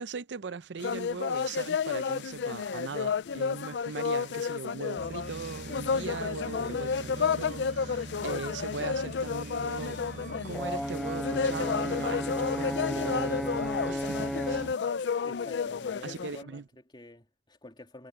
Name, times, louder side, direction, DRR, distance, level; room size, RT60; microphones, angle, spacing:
voice 1, 0.0-10.0 10.4-14.7 16.0-16.7, right 4 dB, 80° right, 0.6 m, -39 dB
sound 1, 0.8-16.4, left 6 dB, 70° left, 0.4 m, -32 dB
sound 2, 5.0-14.7, right 2 dB, 45° right, 0.7 m, -43 dB
Brass instrument, 10.5-14.8, equal, ahead, 0.4 m, -33 dB
voice 2, 15.2-18.1, left 1 dB, 25° left, 3.1 m, -49 dB
head